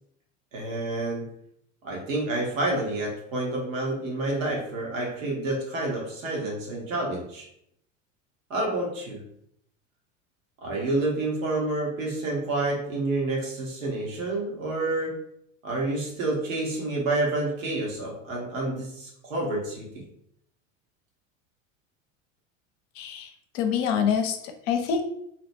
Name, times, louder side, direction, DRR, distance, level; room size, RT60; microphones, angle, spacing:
voice 1, 0.5-1.3 1.8-7.5 8.5-9.2 10.6-15.2 15.6-20.1, right 2 dB, 85° right, -2 dB, 1.0 m, -29 dB
voice 2, 22.9-25.0, left 7 dB, 60° left, 6 dB, 0.6 m, -26 dB
2.8 x 2.1 x 2.6 m, 0.73 s
hypercardioid pair, 95°, 39 cm